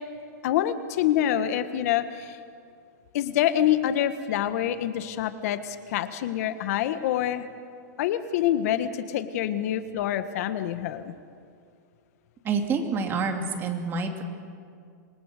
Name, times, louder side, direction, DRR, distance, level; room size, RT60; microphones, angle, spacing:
voice 1, 0.4-2.4 3.1-7.4 8.0-11.1, left 11 dB, 55° left, 11 dB, 1.6 m, -26 dB
voice 2, 12.4-14.2, right 4 dB, 20° right, 4 dB, 2.6 m, -27 dB
27.0 x 20.5 x 6.8 m, 2.3 s
hypercardioid pair, 150°, 10 cm